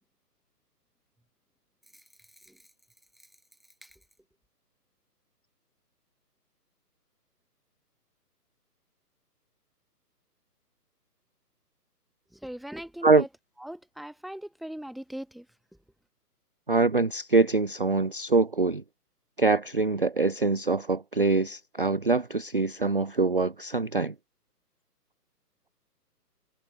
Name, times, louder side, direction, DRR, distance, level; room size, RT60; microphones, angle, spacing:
voice 1, 1.9-2.7 3.2-3.3 3.8-4.0 12.3-13.3 13.6-15.5, equal, ahead, 1.2 m, -41 dB
voice 2, 16.7-18.8 19.4-24.1, right 3 dB, 35° right, 0.5 m, -24 dB
figure-of-eight pair, 140°, 48 cm